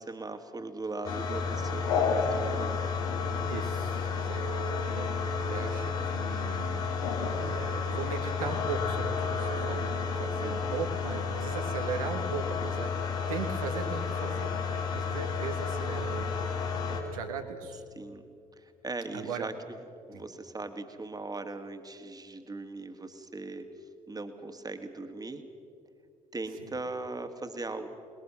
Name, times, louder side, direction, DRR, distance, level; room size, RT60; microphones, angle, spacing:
voice 1, 0.0-2.8 10.4-10.8 18.0-18.2 18.6-19.8 20.1-23.7 24.1-25.4 26.3-27.9, right 3 dB, 20° right, 7 dB, 2.0 m, -39 dB
sound 1, 1.0-17.0, left 5 dB, 75° left, 2.7 m, -31 dB
voice 2, 3.5-6.7 7.2-16.5 17.0-17.8 19.1-19.5 20.1-20.2, right 6 dB, 80° right, 5 dB, 1.6 m, -39 dB
27.5 x 21.0 x 6.2 m, 2.5 s
figure-of-eight pair, 45°, 18 cm